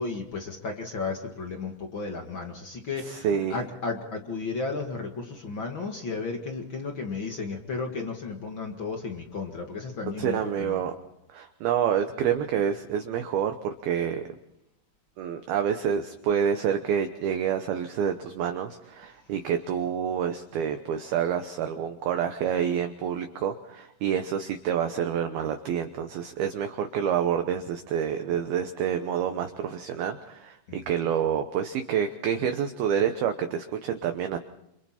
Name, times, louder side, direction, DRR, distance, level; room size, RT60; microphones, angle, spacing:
voice 1, 0.0-10.9 30.7-31.1, left 4 dB, 60° left, 3 dB, 1.2 m, -34 dB
voice 2, 3.0-3.6 10.2-10.9 11.3-14.2 15.2-34.4, right 8 dB, 70° right, 6 dB, 2.4 m, -28 dB
28.5 x 27.5 x 4.4 m, 0.80 s
omnidirectional pair, 5.4 m